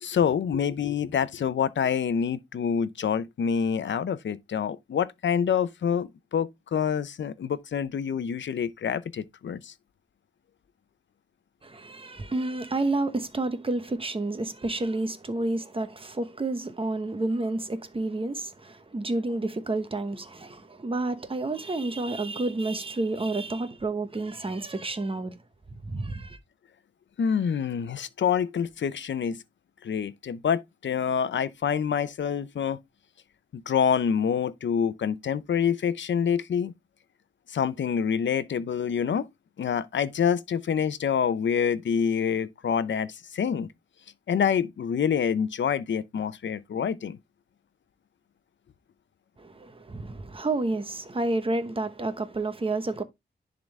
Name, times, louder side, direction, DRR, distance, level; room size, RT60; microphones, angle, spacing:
voice 1, 0.0-9.7 27.2-29.4 29.8-32.8 33.5-36.7 37.5-39.3 39.6-43.7 44.3-47.2, left 7 dB, 85° left, 0.6 m, -27 dB
voice 2, 11.6-25.3 25.9-26.4 49.4-53.0, right 2 dB, 30° right, 1.0 m, -30 dB
10.5 x 3.8 x 3.2 m
wide cardioid pair, 125°, 19 cm